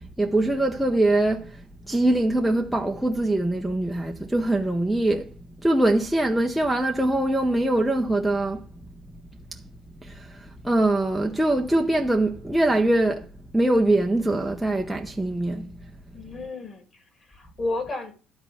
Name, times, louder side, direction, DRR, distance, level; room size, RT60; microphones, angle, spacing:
voice 1, 0.0-5.3 5.6-8.6 9.5-9.6 10.0-13.3 13.5-15.9, right 1 dB, ahead, 0.7 m, -23 dB
voice 2, 16.1-18.1, left 2 dB, 25° left, 2.5 m, -32 dB
12.5 x 4.4 x 6.9 m
cardioid pair, 165°, 0 cm